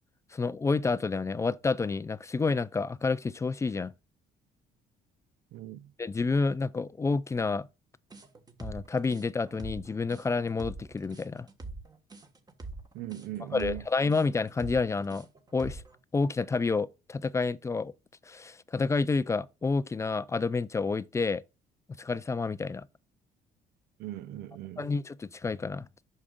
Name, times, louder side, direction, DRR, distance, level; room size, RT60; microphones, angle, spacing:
voice 1, 0.3-3.9 6.0-7.7 8.6-11.5 13.5-15.3 15.5-15.8 16.1-17.9 18.2-21.4 22.0-22.9 24.8-25.9, left 4 dB, 15° left, 0.3 m, -29 dB
voice 2, 5.5-5.9 12.9-13.8 24.0-24.9, right 14 dB, 75° right, 0.7 m, -39 dB
sound 1, 8.1-16.0, right 3 dB, 25° right, 1.4 m, -43 dB
8.4 x 6.4 x 2.4 m
cardioid pair, 110°, 17 cm